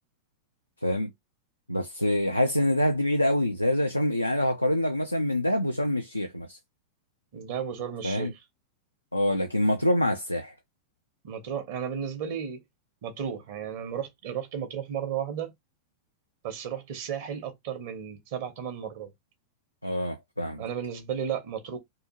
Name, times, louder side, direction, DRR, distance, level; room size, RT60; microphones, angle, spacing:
voice 1, 1.7-6.6 8.0-8.3 9.1-10.5 19.8-20.6, left 1 dB, 85° left, 0.4 m, -26 dB
voice 2, 7.3-8.4 11.2-12.6 13.0-15.5 16.4-19.1 20.6-21.8, right 8 dB, 55° right, 0.8 m, -34 dB
2.7 x 2.4 x 2.7 m
figure-of-eight pair, 90°, 0 cm